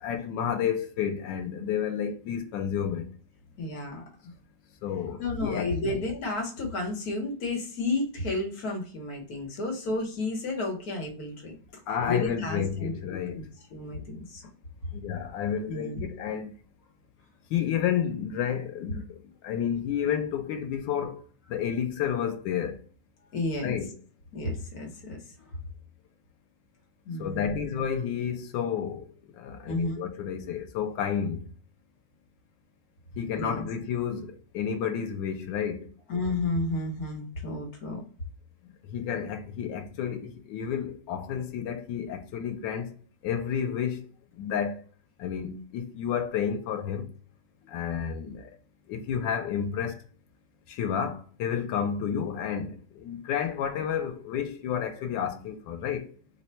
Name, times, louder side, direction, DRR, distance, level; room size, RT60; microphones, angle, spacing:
voice 1, 0.0-3.1 4.8-6.0 11.9-13.4 14.9-16.5 17.5-21.2 21.5-22.8 23.6-23.9 27.2-29.1 29.4-31.4 33.2-35.9 38.8-42.9 43.2-44.0 44.4-44.8 45.2-47.1 47.7-48.5 48.9-50.0 50.7-56.1, left 8 dB, 90° left, 1.3 m, -31 dB
voice 2, 3.6-4.0 5.2-11.5 12.1-12.9 13.3-13.4 13.7-14.4 15.7-16.0 23.3-23.8 24.3-25.2 27.1-27.7 29.7-30.0 33.3-33.7 36.1-38.0, left 2 dB, 60° left, 1.3 m, -32 dB
3.3 x 2.1 x 4.1 m
omnidirectional pair, 2.0 m